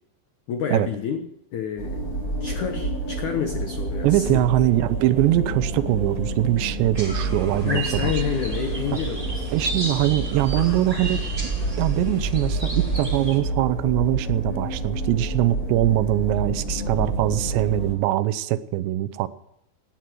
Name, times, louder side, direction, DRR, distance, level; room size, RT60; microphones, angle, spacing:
voice 1, 0.5-1.3 1.5-2.1 2.4-4.4 7.6-9.5 10.6-10.8, left 8 dB, 80° left, 6 dB, 1.7 m, -29 dB
sound 1, 1.8-18.0, right 2 dB, 20° left, 4.3 m, -29 dB
voice 2, 4.0-8.1 9.5-11.2 11.8-19.3, right 15 dB, 80° right, 14 dB, 2.9 m, -22 dB
sound 2, 6.9-13.4, right 3 dB, 20° right, 0.9 m, -31 dB
18.0 x 10.0 x 7.6 m, 0.77 s
omnidirectional pair, 5.1 m